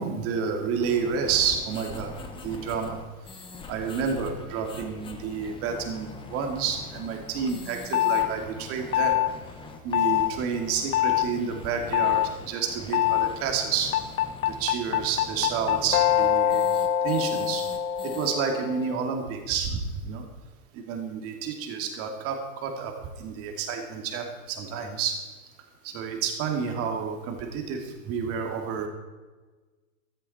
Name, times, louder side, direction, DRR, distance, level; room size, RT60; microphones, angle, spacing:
voice 1, 0.0-2.1 2.4-3.0 3.7-9.2 9.8-13.9 14.4-17.6 18.0-19.8 20.0-20.2 20.7-25.2 25.8-28.9, right 6 dB, 30° right, 3 dB, 2.4 m, -30 dB
sound 1, 0.8-18.3, left 3 dB, 10° left, 1.0 m, -43 dB
sound 2, 7.9-8.3 8.9-9.3 9.9-10.3 10.9-11.3 11.9-12.3 12.9-13.3 13.9-19.0, left 11 dB, 80° left, 0.9 m, -24 dB
14.5 x 13.0 x 4.2 m, 1.3 s
hypercardioid pair, 145°, 43 cm